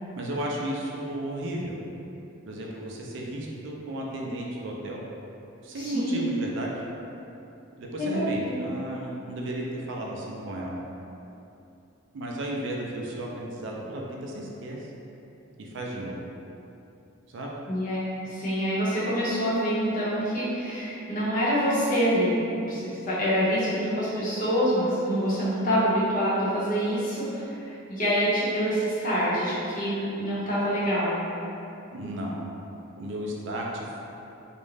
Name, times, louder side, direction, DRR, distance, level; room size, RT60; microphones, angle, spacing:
voice 1, 0.2-1.8 2.5-5.0 5.6-6.7 7.8-10.8 12.1-14.8 15.6-16.2 17.3-17.5 31.9-32.5 33.0-34.0, right 1 dB, 60° right, -2 dB, 0.3 m, -33 dB
voice 2, 5.8-6.1 8.0-8.6 17.7-31.2, equal, 40° left, -10 dB, 0.7 m, -26 dB
2.4 x 2.1 x 3.1 m, 2.8 s
head